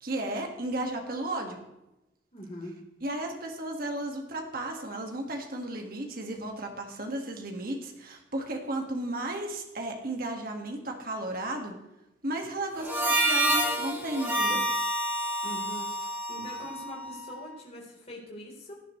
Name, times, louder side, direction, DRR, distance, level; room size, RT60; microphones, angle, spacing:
voice 1, 0.0-1.6 3.0-11.8 12.2-14.6, right 1 dB, 50° right, 2 dB, 1.8 m, -34 dB
voice 2, 2.3-2.8 15.4-18.7, equal, 35° left, -2 dB, 3.8 m, -43 dB
Harmonica, 12.8-17.4, right 1 dB, 10° right, 2.5 m, -28 dB
17.5 x 9.9 x 3.2 m, 0.93 s
head